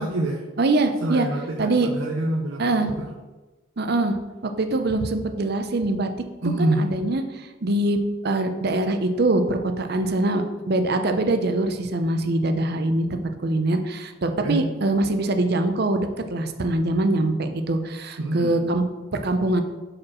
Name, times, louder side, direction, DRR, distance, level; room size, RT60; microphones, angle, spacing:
voice 1, 0.0-0.4 1.0-3.1 6.4-6.9 14.4-14.6 18.2-18.6, right 1 dB, 85° right, 0 dB, 0.7 m, -26 dB
voice 2, 0.6-1.3 1.6-1.9 2.6-2.9 3.8-4.2 4.4-6.1 6.6-18.8 19.2-19.6, right 2 dB, 55° right, 7 dB, 0.6 m, -23 dB
5.0 x 4.5 x 6.1 m, 1.2 s
head